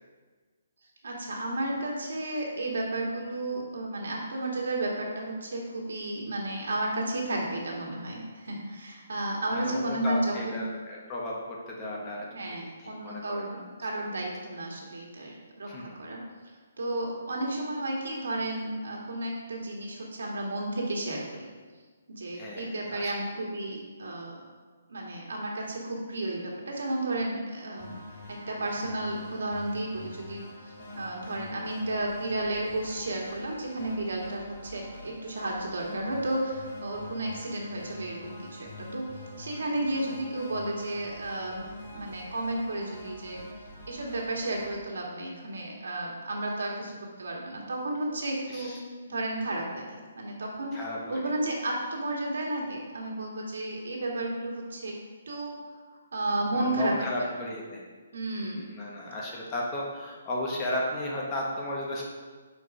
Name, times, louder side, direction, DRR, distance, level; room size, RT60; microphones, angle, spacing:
voice 1, 1.0-10.6 12.3-13.5 13.8-16.2 16.8-21.5 22.1-24.4 24.9-28.0 28.3-39.1 39.4-41.7 41.9-43.4 43.9-48.7 49.1-50.7 51.1-54.9 55.3-55.6 56.1-57.1 58.1-58.7, right 1 dB, 80° right, -2 dB, 1.7 m, -32 dB
voice 2, 9.5-12.6 12.8-13.6 15.7-15.9 22.3-23.1 48.5-48.8 50.7-51.2 56.5-57.8 58.3-62.0, left 1 dB, 25° left, -3 dB, 1.1 m, -35 dB
sound 1, 27.8-44.7, left 1 dB, 50° left, 1.6 m, -45 dB
4.7 x 4.6 x 4.9 m, 1.4 s
hypercardioid pair, 155°, 0 cm